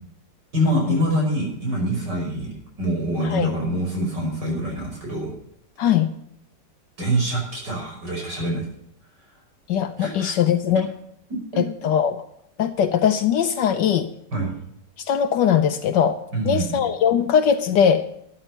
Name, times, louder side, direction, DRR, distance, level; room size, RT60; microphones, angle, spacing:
voice 1, 0.5-5.3 7.0-8.7 10.0-10.4 11.3-11.4 14.3-14.5 16.3-16.8, right 1 dB, 70° right, 0 dB, 6.2 m, -25 dB
voice 2, 5.8-6.1 9.7-10.9 11.6-12.2 12.6-14.1 15.0-16.2 16.5-18.1, left 8 dB, 80° left, 7 dB, 1.4 m, -20 dB
13.0 x 10.5 x 5.5 m, 0.74 s
omnidirectional pair, 1.9 m